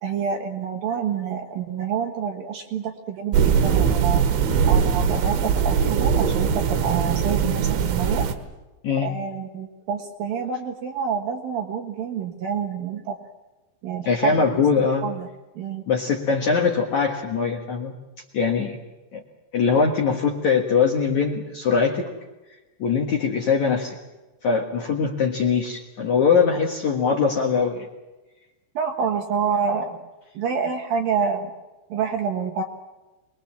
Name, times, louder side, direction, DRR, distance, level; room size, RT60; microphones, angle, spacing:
voice 1, 0.0-4.2 4.7-7.6 7.9-8.3 9.0-13.2 13.8-14.5 15.0-15.3 15.6-15.8 28.7-30.0 30.3-31.5 31.9-32.6, right 6 dB, 65° right, 4 dB, 2.7 m, -27 dB
sound 1, 3.3-8.3, right 7 dB, 80° right, 3.9 m, -21 dB
voice 2, 14.1-15.1 15.9-17.9 18.3-18.8 19.1-19.2 19.5-22.1 22.8-24.0 24.4-27.9, left 5 dB, 55° left, 1 dB, 2.2 m, -22 dB
25.5 x 21.5 x 7.4 m, 1.1 s
omnidirectional pair, 5.4 m